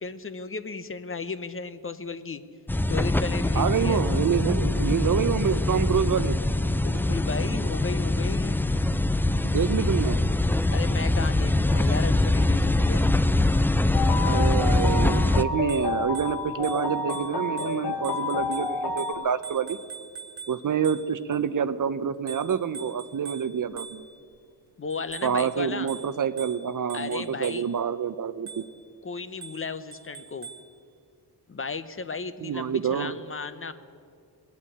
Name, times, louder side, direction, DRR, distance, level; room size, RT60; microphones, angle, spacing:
voice 1, 0.0-2.4 2.9-4.0 6.8-8.6 10.7-13.1 24.8-25.9 26.9-27.6 29.0-30.5 31.5-33.7, left 4 dB, 30° left, 12 dB, 0.7 m, -34 dB
sound 1, 2.7-15.4, left 2 dB, 5° left, 0.3 m, -23 dB
voice 2, 3.5-6.4 9.4-10.2 14.2-19.8 20.5-24.0 25.2-28.6 32.4-33.2, right 7 dB, 50° right, 13 dB, 0.6 m, -27 dB
sound 2, 13.9-19.1, left 4 dB, 75° left, 1.3 m, -30 dB
Bicycle bell, 15.5-21.4 22.3-24.4 24.9-27.9 28.5-28.9 29.4-30.8, right 6 dB, 70° right, 1.3 m, -44 dB
19.5 x 8.4 x 8.6 m, 2.2 s
cardioid pair, 85°, 41 cm